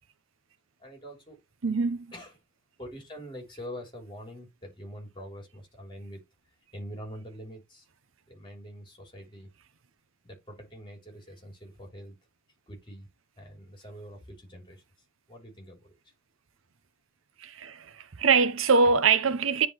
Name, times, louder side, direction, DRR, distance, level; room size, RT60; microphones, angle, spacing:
voice 1, 0.8-1.4 2.1-2.4 2.8-6.2 6.7-7.9 8.3-9.5 10.2-12.2 12.7-13.1 13.4-14.8 15.3-15.9, equal, 25° left, 3.0 m, -44 dB
voice 2, 1.6-2.1 17.4-19.7, right 5 dB, 75° right, 0.7 m, -23 dB
9.8 x 3.6 x 3.0 m
head